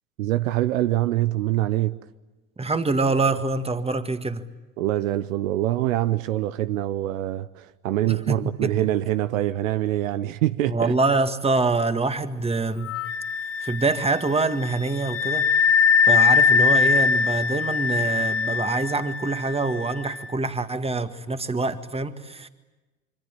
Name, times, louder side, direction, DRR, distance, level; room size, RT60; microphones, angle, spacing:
voice 1, 0.2-2.0 4.8-10.9, right 14 dB, 70° right, 0.9 m, -24 dB
voice 2, 2.6-4.4 8.0-8.8 10.7-12.9 13.6-15.5 16.0-22.5, right 3 dB, 15° right, 1.9 m, -25 dB
Wind instrument woodwind instrument, 12.8-20.3, left 6 dB, 30° left, 1.2 m, -22 dB
26.0 x 25.0 x 9.1 m
figure-of-eight pair, 65°, 41 cm